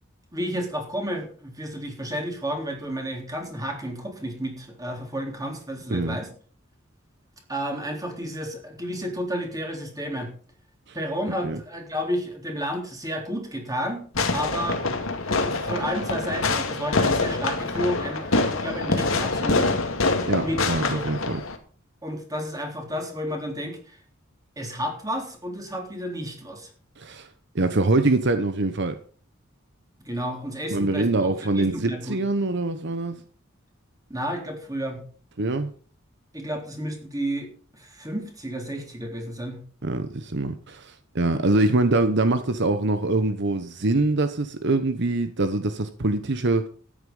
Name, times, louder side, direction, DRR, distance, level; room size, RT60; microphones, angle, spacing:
voice 1, 0.3-6.3 7.5-10.3 10.9-14.0 14.3-19.7 20.4-21.1 22.0-24.0 24.6-26.7 30.0-32.2 34.1-35.0 36.3-37.5 37.7-39.6, equal, 20° right, 2 dB, 3.7 m, -31 dB
Fireworks, 14.1-21.6, left 3 dB, 80° left, 2.1 m, -25 dB
voice 2, 20.3-21.4 27.0-27.3 27.5-29.0 30.7-33.2 35.4-35.7 39.8-46.7, right 2 dB, 60° right, 10 dB, 1.0 m, -24 dB
13.5 x 9.9 x 5.5 m, 0.43 s
head